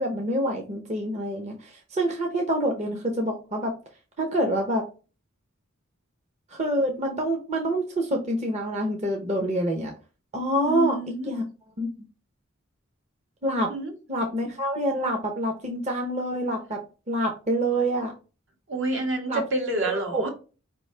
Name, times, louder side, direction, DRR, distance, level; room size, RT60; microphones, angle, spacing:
voice 1, 0.0-3.7 4.2-4.8 6.5-9.9 10.3-11.0 11.2-11.4 11.8-11.9 13.4-13.7 14.1-16.8 17.1-18.1 19.3-19.4 19.8-20.2, right 1 dB, 35° right, 1 dB, 0.7 m, -26 dB
voice 2, 10.7-11.3 13.7-13.9 18.7-20.3, right 2 dB, 70° right, 2 dB, 1.3 m, -28 dB
4.7 x 3.1 x 3.2 m, 0.33 s
head